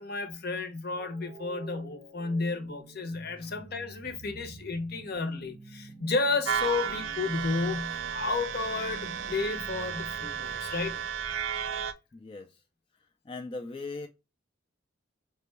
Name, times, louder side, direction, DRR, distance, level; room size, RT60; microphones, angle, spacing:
voice 1, 0.0-11.0, left 3 dB, 55° left, 0.8 m, -32 dB
sound 1, 0.9-11.1, right 2 dB, 30° right, 0.6 m, -49 dB
sound 2, 6.4-11.9, right 7 dB, 85° right, 0.5 m, -33 dB
voice 2, 12.1-12.6 13.0-14.1, left 3 dB, 25° left, 0.4 m, -40 dB
4.9 x 2.2 x 3.2 m
head